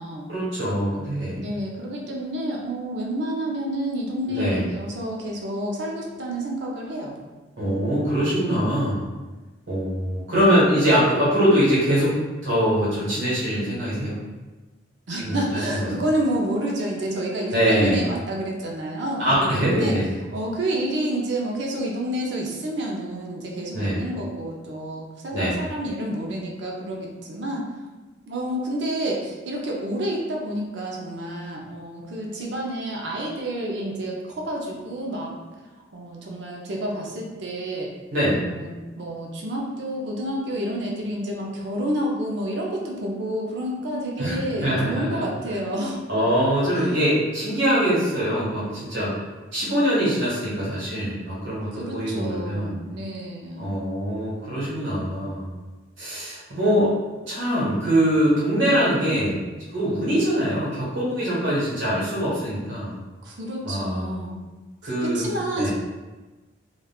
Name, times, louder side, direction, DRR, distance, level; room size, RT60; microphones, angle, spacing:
voice 1, 0.3-1.4 4.3-4.6 7.6-9.0 9.7-12.2 12.4-14.2 15.2-15.8 17.5-18.0 19.2-20.1 23.7-24.0 25.3-25.6 38.1-38.4 44.2-45.2 45.5-45.6 46.1-49.1 49.5-52.7 53.6-55.5 56.0-56.9 57.3-59.4 59.7-62.9 63.6-64.1 64.8-65.3 65.6-65.7, equal, 85° right, -8 dB, 1.2 m, -23 dB
voice 2, 1.3-7.2 15.1-20.0 20.3-27.7 28.3-35.3 35.9-37.9 38.3-46.0 46.7-47.0 51.7-53.7 63.2-64.5 64.8-65.7, right 1 dB, 70° right, -1 dB, 0.5 m, -29 dB
3.5 x 2.3 x 2.3 m, 1.2 s
head